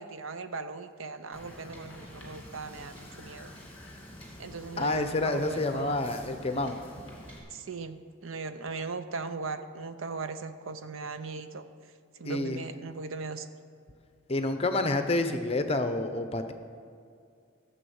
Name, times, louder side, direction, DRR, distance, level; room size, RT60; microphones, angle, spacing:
voice 1, 0.0-3.5 4.4-6.0 7.5-11.6 12.2-13.5, right 4 dB, 75° right, 10 dB, 0.7 m, -38 dB
Wind / Boat Water vehicle, 1.3-7.4, left 1 dB, 10° left, 2.3 m, -47 dB
voice 2, 4.8-6.8 12.2-12.6 14.3-16.5, left 2 dB, 30° left, 8 dB, 0.6 m, -28 dB
13.5 x 7.1 x 7.0 m, 2.3 s
head